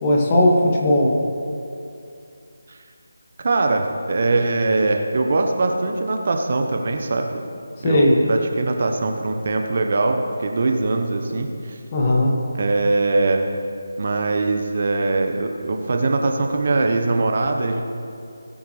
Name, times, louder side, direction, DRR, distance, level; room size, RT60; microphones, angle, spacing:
voice 1, 0.0-1.1 7.8-8.2 11.9-12.3, left 1 dB, 25° left, -2 dB, 2.1 m, -17 dB
voice 2, 3.4-7.4 7.8-11.8 12.5-13.5 14.0-17.8, right 3 dB, 45° right, 4 dB, 1.0 m, -22 dB
19.5 x 9.2 x 3.3 m, 2.4 s
figure-of-eight pair, 155°, 0 cm